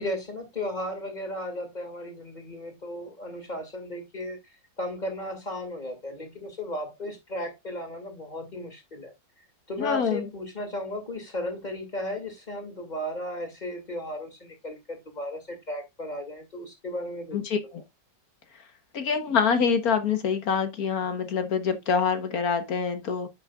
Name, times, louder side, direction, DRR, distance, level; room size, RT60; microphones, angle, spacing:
voice 1, 0.0-4.4 4.8-9.1 9.7-17.5, left 1 dB, 25° left, 2.5 m, -35 dB
voice 2, 9.8-10.3 17.3-17.6 18.9-23.3, left 6 dB, 60° left, 1.5 m, -25 dB
10.0 x 6.3 x 2.3 m
omnidirectional pair, 1.9 m